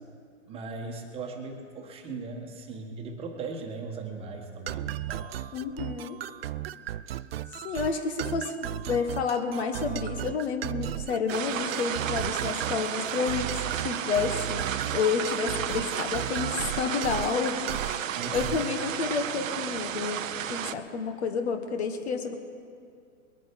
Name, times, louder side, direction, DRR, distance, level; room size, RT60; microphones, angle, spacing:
voice 1, 0.5-5.3 18.1-18.6, right 4 dB, 15° right, 2 dB, 1.4 m, -38 dB
sound 1, 4.7-18.7, right 12 dB, 50° right, 0.4 m, -36 dB
voice 2, 5.5-6.2 7.6-20.2 20.5-22.3, left 5 dB, 50° left, 6 dB, 1.4 m, -30 dB
sound 2, 11.3-20.7, right 10 dB, 75° right, 0.8 m, -33 dB
21.5 x 9.3 x 5.3 m, 2.2 s
hypercardioid pair, 145°, 41 cm